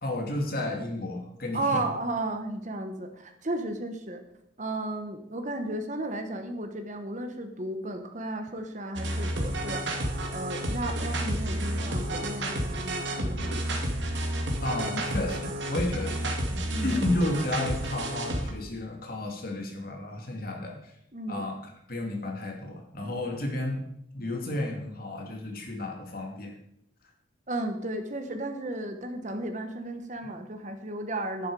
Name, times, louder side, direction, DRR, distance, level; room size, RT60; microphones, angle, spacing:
voice 1, 0.0-1.9 14.6-21.0 21.3-21.5 21.9-23.8 24.1-26.5, left 2 dB, 50° left, 1 dB, 2.5 m, -32 dB
voice 2, 1.5-4.2 4.6-9.8 10.3-13.6 16.7-17.0 21.1-21.4 27.5-31.5, right 2 dB, 40° right, 6 dB, 1.2 m, -34 dB
sound 1, 9.0-18.5, right 1 dB, 70° right, 2.2 m, -31 dB
11.0 x 10.5 x 4.8 m, 0.77 s
head